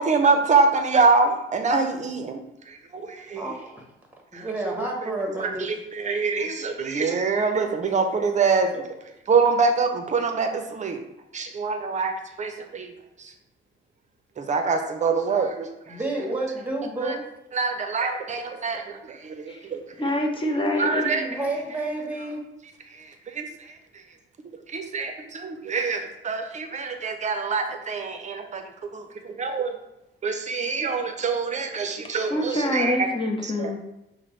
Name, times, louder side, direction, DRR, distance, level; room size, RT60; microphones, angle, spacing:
voice 1, 0.0-2.4 2.7-3.5 4.3-5.1 5.4-8.9 9.3-11.0 11.3-12.9 14.4-16.0 17.0-17.2 17.5-19.8 20.8-21.3 23.3-23.5 24.7-28.6 28.9-29.8 30.2-33.1 33.4-33.7, right 4 dB, 35° right, 6 dB, 0.6 m, -25 dB
voice 2, 3.3-3.8 4.3-5.7 7.5-7.6 15.9-17.2 21.2-22.4, right 2 dB, 10° right, 0 dB, 1.1 m, -30 dB
voice 3, 20.0-21.2 32.0-33.8, left 1 dB, 25° left, 2 dB, 0.8 m, -26 dB
5.8 x 2.1 x 3.2 m, 0.87 s
cardioid pair, 90°, 20 cm